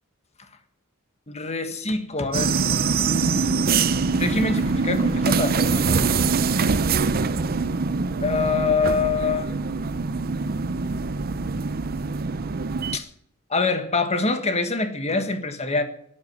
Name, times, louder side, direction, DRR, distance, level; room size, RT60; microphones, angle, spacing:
voice 1, 1.3-2.6 4.2-6.0 8.2-9.5 12.9-13.1 13.5-15.8, left 4 dB, 30° left, 8 dB, 1.6 m, -25 dB
sound 1, 2.3-13.0, right 4 dB, 45° right, 0.6 m, -24 dB
12.0 x 11.0 x 9.5 m, 0.72 s
head